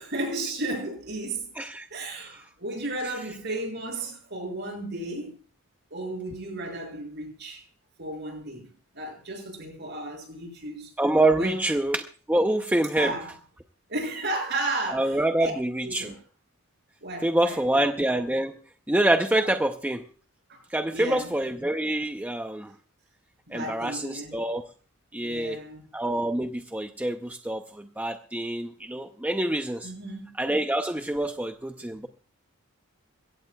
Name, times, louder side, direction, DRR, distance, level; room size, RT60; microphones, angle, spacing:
voice 1, 0.0-1.5 1.9-5.4 5.9-7.6 8.0-8.7 8.9-10.9 11.3-11.6 12.9-13.3 13.9-15.5 15.8-16.1 17.0-17.9 20.5-20.6 20.9-21.3 23.5-24.4 25.2-25.9 29.8-30.3, right 2 dB, 50° right, 6.7 m, -34 dB
voice 2, 1.6-1.9 2.2-2.3 11.0-13.1 14.9-16.1 17.2-18.6 18.9-20.0 20.7-22.7 23.5-24.7 25.1-25.6 25.9-29.9 30.4-32.1, right 1 dB, 5° right, 0.6 m, -26 dB
22.5 x 16.5 x 2.3 m
head